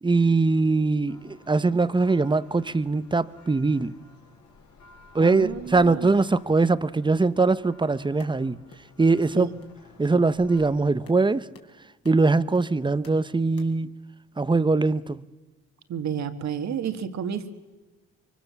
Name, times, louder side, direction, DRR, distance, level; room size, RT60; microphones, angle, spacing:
voice 1, 0.0-3.9 5.1-8.6 9.0-9.5 10.0-11.5 12.0-13.9 14.4-15.2, right 3 dB, 15° right, 0.9 m, -22 dB
Church bell, 1.1-10.8, left 3 dB, 70° left, 4.7 m, -54 dB
voice 2, 5.2-6.1 9.3-9.5 15.9-17.5, right 8 dB, 65° right, 2.1 m, -30 dB
sound 1, 8.2-13.7, left 5 dB, 50° left, 4.1 m, -52 dB
24.0 x 24.0 x 7.2 m
cardioid pair, 90°, 30 cm